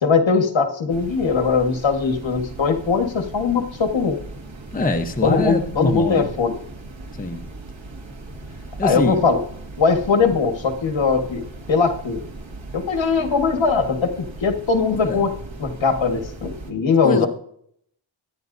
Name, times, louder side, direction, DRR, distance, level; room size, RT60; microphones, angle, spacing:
voice 1, 0.0-4.2 5.2-6.6 8.8-9.4 9.8-11.4 11.7-12.2 12.7-15.3 15.6-17.3, left 5 dB, 65° left, 5 dB, 1.6 m, -20 dB
sound 1, 0.9-16.7, right 2 dB, 70° right, 2.0 m, -38 dB
voice 2, 4.7-6.3 7.2-7.4 8.8-9.3 15.0-15.2 17.0-17.3, left 2 dB, 20° left, 5 dB, 0.9 m, -24 dB
23.5 x 9.3 x 2.7 m, 0.66 s
wide cardioid pair, 140°, 48 cm